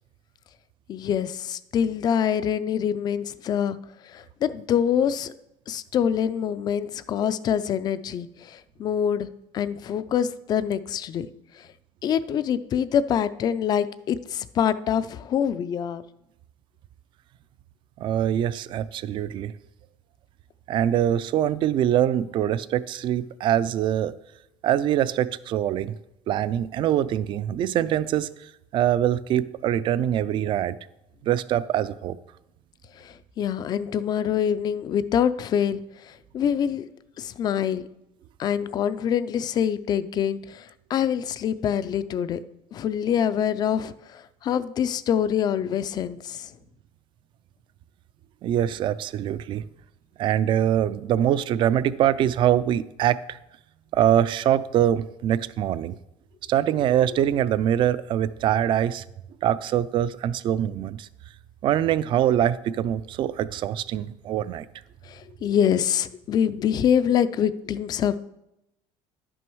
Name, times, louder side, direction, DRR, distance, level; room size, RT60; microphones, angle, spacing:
voice 1, 0.9-3.8 4.0-5.3 5.7-9.3 9.5-11.3 11.5-11.7 12.0-16.0 33.0-36.8 37.2-37.9 38.4-42.4 42.7-46.5 65.0-68.2, left 8 dB, 30° left, 15 dB, 0.4 m, -25 dB
voice 2, 18.0-19.5 20.7-24.1 24.6-25.9 26.3-28.3 28.7-30.8 31.2-32.2 48.4-49.7 50.2-53.4 53.9-55.9 56.5-59.0 59.4-61.1 61.6-64.7, right 11 dB, 40° right, 17 dB, 0.4 m, -23 dB
11.0 x 6.2 x 4.6 m, 0.87 s
cardioid pair, 160°, 13 cm